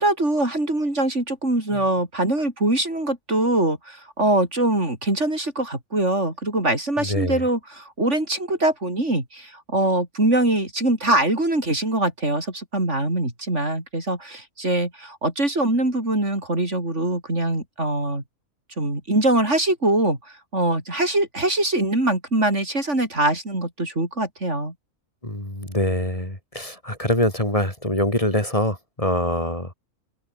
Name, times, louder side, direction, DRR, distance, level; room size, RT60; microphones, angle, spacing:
voice 1, 0.0-18.2 18.8-20.2 20.5-24.7, right 1 dB, 55° right, 6.2 m, -23 dB
voice 2, 7.0-7.4 25.2-29.7, left 1 dB, 25° left, 4.9 m, -24 dB
open air
omnidirectional pair, 1.5 m